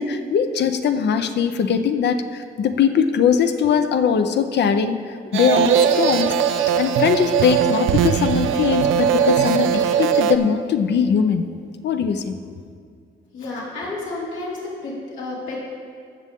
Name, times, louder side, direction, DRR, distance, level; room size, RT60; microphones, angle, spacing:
voice 1, 0.0-5.0 5.3-11.5 11.8-12.4, left 7 dB, 60° left, 9 dB, 0.7 m, -20 dB
sound 1, 5.3-10.4, right 8 dB, 80° right, 0.5 m, -19 dB
voice 2, 13.3-15.6, left 2 dB, 80° left, -5 dB, 2.8 m, -31 dB
15.0 x 6.5 x 3.6 m, 2.2 s
cardioid pair, 90°, 20 cm